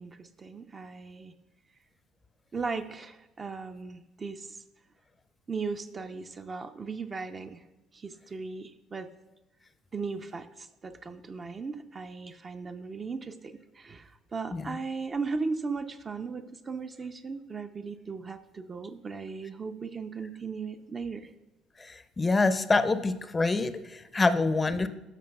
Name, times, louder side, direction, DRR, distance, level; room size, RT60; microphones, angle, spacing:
voice 1, 0.0-1.3 2.5-4.6 5.5-7.6 7.9-9.1 9.9-21.3, right 4 dB, 35° right, 6 dB, 0.5 m, -37 dB
voice 2, 21.8-24.9, left 3 dB, 25° left, 12 dB, 0.5 m, -26 dB
13.0 x 5.1 x 2.3 m, 1.0 s
hypercardioid pair, 55°, 0 cm